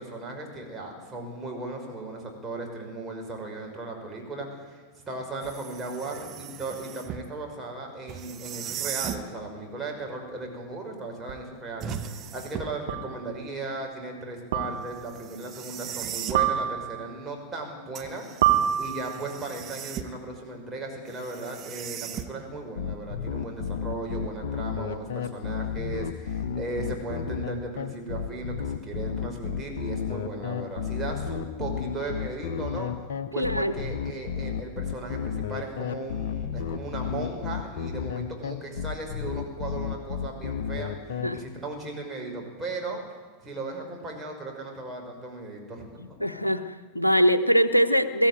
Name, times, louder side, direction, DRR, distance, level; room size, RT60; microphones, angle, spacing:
voice 1, 0.0-18.3 18.8-32.9 33.3-40.9 41.3-43.0 43.4-46.4, right 2 dB, 15° right, 0 dB, 5.8 m, -36 dB
sound 1, 5.4-7.3 8.1-9.3 11.8-12.9 15.1-16.5 18.0-20.3 21.1-22.6, right 9 dB, 30° right, 1.3 m, -37 dB
sound 2, 11.3-11.4 12.9-13.3 14.5-15.1 16.3-17.1 18.4-19.3, right 11 dB, 60° right, 2.0 m, -26 dB
sound 3, 22.8-41.3, left 7 dB, 55° left, 1.1 m, -32 dB
voice 2, 33.4-33.7 41.2-41.4 46.2-48.3, equal, 85° left, 11 dB, 1.0 m, -22 dB
22.5 x 15.5 x 9.3 m, 1.4 s
figure-of-eight pair, 90°, 0 cm